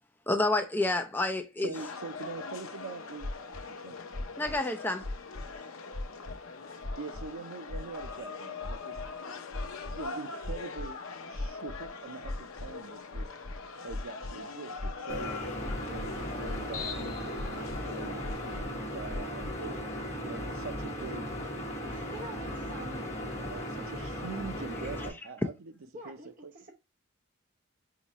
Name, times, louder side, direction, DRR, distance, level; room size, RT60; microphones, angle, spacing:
voice 1, 0.3-1.7 4.4-5.1, left 2 dB, 10° left, 0.5 m, -29 dB
voice 2, 1.6-3.3 3.6-4.0 7.0-9.0 9.8-11.0 11.3-13.3 13.8-15.3 15.9-19.9 20.2-21.3 23.4-25.7 26.0-26.5, right 4 dB, 80° right, 0.6 m, -43 dB
sound 1, 1.7-18.6, left 4 dB, 80° left, 0.6 m, -42 dB
sound 2, 3.2-3.6 4.1-4.6 5.0-5.6 5.9-6.4 6.8-7.3 7.7-8.1 8.6-9.1 9.5-10.0 10.4-10.9 11.3-11.9 12.2-12.7 13.1-14.3 14.8-15.2 15.6-16.2 16.4-16.9 17.3-17.8 18.2-18.7 19.1-19.5, left 1 dB, 65° right, 2.4 m, -37 dB
sound 3, 15.1-25.1, equal, 30° left, 1.2 m, -37 dB
voice 3, 21.8-23.1 25.9-26.7, right 2 dB, 40° right, 1.0 m, -46 dB
4.1 x 3.9 x 2.9 m
head